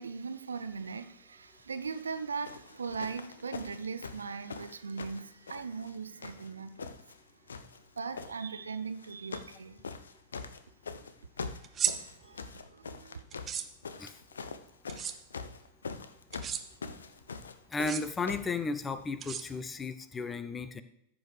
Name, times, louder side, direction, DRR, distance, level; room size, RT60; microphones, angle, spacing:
voice 1, 0.0-7.0 8.0-9.8 11.5-13.2, right 5 dB, 75° right, 12 dB, 0.5 m, -40 dB
sound 1, 1.8-2.1 2.4-5.9 6.2-7.2 7.5-8.3 9.0-9.6 9.8-18.5 19.4-19.5, left 5 dB, 70° left, 0.6 m, -43 dB
sound 2, 11.6-11.9 13.3-13.7 14.9-15.1 16.3-16.6 17.7-18.0 19.2-19.8, right 8 dB, 25° right, 0.7 m, -33 dB
voice 2, 17.7-20.8, left 3 dB, 15° left, 12 dB, 0.6 m, -34 dB
14.5 x 6.2 x 3.3 m, 0.77 s
figure-of-eight pair, 90°, 0 cm